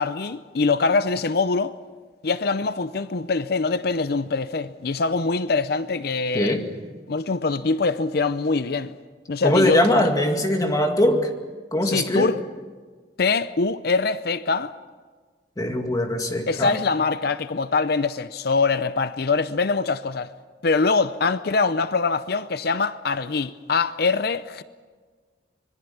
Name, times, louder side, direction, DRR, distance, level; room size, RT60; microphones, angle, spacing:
voice 1, 0.0-1.7 2.2-6.6 7.1-8.9 9.3-10.0 11.8-12.4 13.2-14.7 16.5-20.3 20.6-24.6, left 4 dB, 55° left, 0.6 m, -23 dB
voice 2, 6.3-6.7 9.4-11.3 11.7-12.3 15.6-16.8, left 1 dB, 20° left, 2.2 m, -21 dB
25.5 x 21.5 x 7.1 m
head